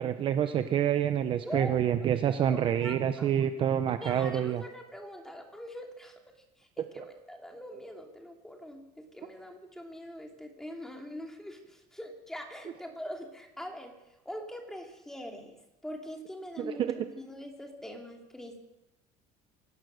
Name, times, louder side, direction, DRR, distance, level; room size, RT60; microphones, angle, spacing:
voice 1, 0.0-4.6 16.6-17.0, right 9 dB, 35° right, 9 dB, 0.8 m, -27 dB
voice 2, 1.4-1.8 2.4-3.5 4.0-6.2 6.6-14.0 14.2-15.6 15.8-18.6, equal, 5° left, 2 dB, 2.7 m, -43 dB
23.0 x 17.5 x 6.5 m, 0.93 s
cardioid pair, 175°, 16 cm